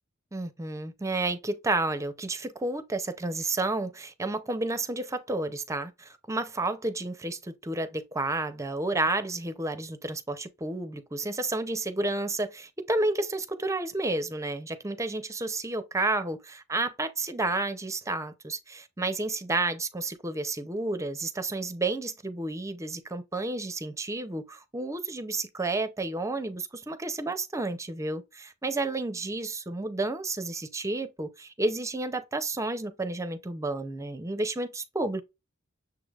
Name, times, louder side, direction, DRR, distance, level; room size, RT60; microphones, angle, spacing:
voice 1, 0.3-35.2, right 2 dB, 15° right, 0.5 m, -31 dB
6.8 x 3.2 x 2.3 m
head